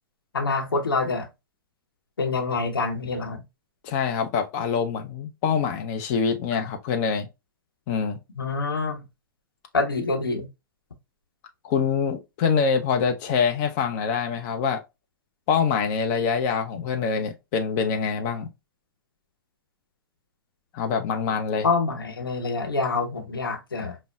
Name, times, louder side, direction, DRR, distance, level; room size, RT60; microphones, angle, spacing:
voice 1, 0.3-1.3 2.2-3.4 8.3-9.0 9.7-10.5 21.6-24.0, left 3 dB, 90° left, 0.9 m, -26 dB
voice 2, 3.8-7.3 7.9-8.2 11.6-14.8 15.5-18.5 20.7-21.7, left 6 dB, 45° left, 0.6 m, -25 dB
5.2 x 2.0 x 2.3 m
hypercardioid pair, 115°, 11 cm